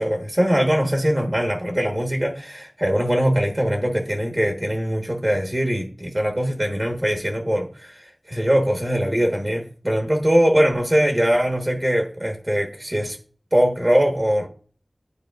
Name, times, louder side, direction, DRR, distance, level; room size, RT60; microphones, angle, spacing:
voice 1, 0.0-13.2 13.5-14.5, equal, 35° right, 1.2 m, -21 dB
9.7 x 4.1 x 2.4 m
wide cardioid pair, 40°, 0 cm